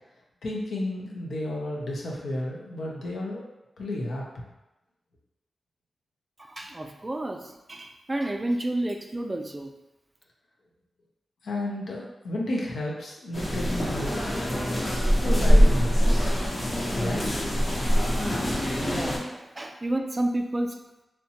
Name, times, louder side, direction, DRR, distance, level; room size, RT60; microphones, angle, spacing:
voice 1, 0.4-3.4 3.8-4.2 11.4-14.3 15.2-16.3 16.9-17.4, left 1 dB, 80° left, -3 dB, 0.6 m, -32 dB
voice 2, 6.4-9.7 18.8-20.8, right 1 dB, 30° right, 4 dB, 0.3 m, -30 dB
sound 1, 13.3-19.2, equal, 50° left, 0.8 m, -23 dB
2.8 x 2.1 x 2.8 m, 0.97 s
cardioid pair, 40°, 0 cm